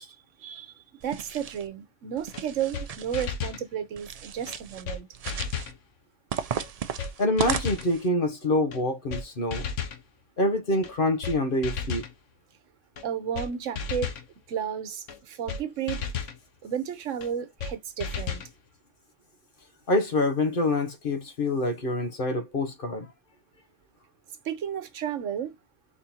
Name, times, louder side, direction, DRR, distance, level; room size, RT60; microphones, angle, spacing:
voice 1, 0.0-5.1 13.0-14.1 14.5-16.1 16.6-18.4 24.4-25.5, right 9 dB, 85° right, 1.2 m, -33 dB
sound 1, 1.0-1.7 2.2-3.3 4.0-4.8 5.1-5.7 6.3-8.1, right 7 dB, 60° right, 0.4 m, -35 dB
sound 2, 2.3-2.4 2.7-2.9 3.1-3.6 4.5-4.6 4.9-5.0 5.3-5.8 6.6-6.7 7.0-7.1 7.4-7.9 8.7-8.8 9.1-9.2 9.5-10.0 10.8-10.9 11.2-11.4 11.6-12.1 13.0-13.1 13.3-13.5 13.8-14.2 15.1-15.2 15.5-15.6 15.9-16.4 17.2-17.3 17.6-17.7 18.0-18.5, left 6 dB, 85° left, 1.2 m, -33 dB
voice 2, 7.2-9.7 10.4-12.0 19.9-23.1, left 2 dB, 50° left, 1.2 m, -26 dB
4.4 x 3.7 x 2.8 m
omnidirectional pair, 1.2 m